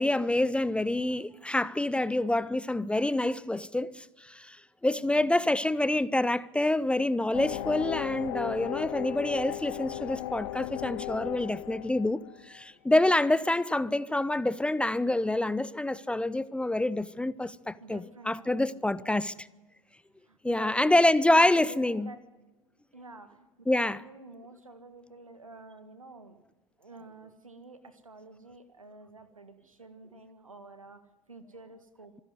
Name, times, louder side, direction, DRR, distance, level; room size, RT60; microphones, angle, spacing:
voice 1, 0.0-4.6 4.8-12.2 12.5-19.5 20.4-22.1 23.7-24.0, left 1 dB, 5° left, 0.6 m, -27 dB
voice 2, 5.0-5.6 17.8-19.4 20.3-22.2 22.9-26.4 26.8-32.2, right 3 dB, 85° right, 1.8 m, -49 dB
sound 1, 7.3-12.6, left 17 dB, 55° left, 0.8 m, -36 dB
26.5 x 10.5 x 9.6 m
figure-of-eight pair, 80°, 17 cm